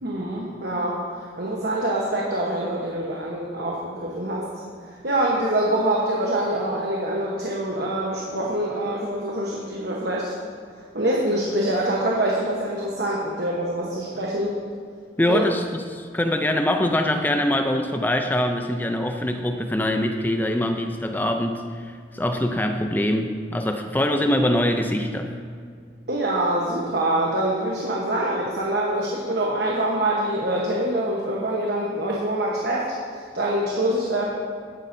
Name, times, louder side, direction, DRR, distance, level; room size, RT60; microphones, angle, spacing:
voice 1, 0.0-4.5 4.9-10.3 10.9-14.6 15.3-15.4 26.1-34.2, right 1 dB, 65° right, -3 dB, 1.2 m, -25 dB
voice 2, 15.2-25.3, left 1 dB, 10° left, 5 dB, 0.4 m, -23 dB
13.5 x 9.7 x 2.7 m, 2.2 s
head